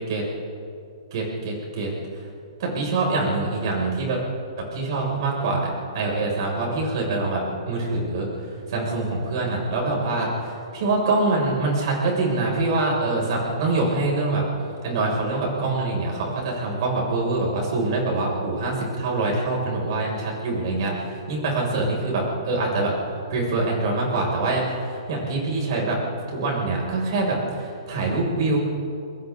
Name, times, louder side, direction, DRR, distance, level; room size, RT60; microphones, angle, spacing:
voice 1, 1.1-1.9 2.6-4.2 4.6-5.7 5.9-8.3 8.7-14.5 14.8-22.9 23.3-26.0 26.3-28.6, right 2 dB, 50° right, -2 dB, 6.9 m, -24 dB
28.5 x 23.0 x 4.1 m, 2.6 s
hypercardioid pair, 160°, 3 cm